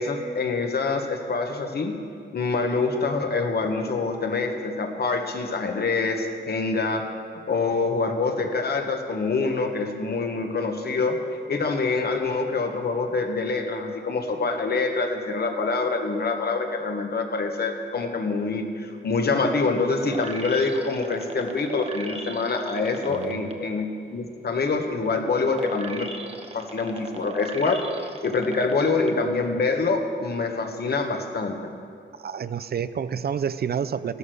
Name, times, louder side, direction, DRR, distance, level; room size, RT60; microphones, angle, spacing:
voice 1, 0.0-7.1 7.5-11.2 11.5-26.1 26.5-31.6, left 3 dB, 55° left, 4 dB, 1.5 m, -25 dB
sound 1, 20.1-23.5 24.0-29.1 29.6-29.7, right 3 dB, 30° right, 1.0 m, -39 dB
voice 2, 23.1-23.6 32.2-34.2, right 7 dB, 55° right, 13 dB, 0.5 m, -29 dB
16.0 x 12.5 x 6.4 m, 2.4 s
wide cardioid pair, 160°, 20 cm